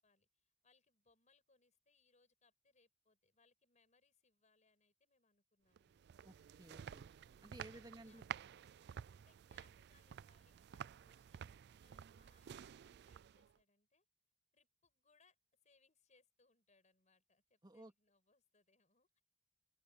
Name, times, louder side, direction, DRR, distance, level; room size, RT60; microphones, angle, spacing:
voice 1, 0.0-6.1 7.6-8.2 9.2-14.1 14.5-15.4 15.6-19.2, left 4 dB, 40° left, 6.4 m, -76 dB
sound 1, 5.8-13.6, right 8 dB, 60° right, 0.3 m, -52 dB
voice 2, 6.2-7.1 7.4-8.2 17.6-17.9, right 1 dB, 25° right, 2.1 m, -56 dB
open air
head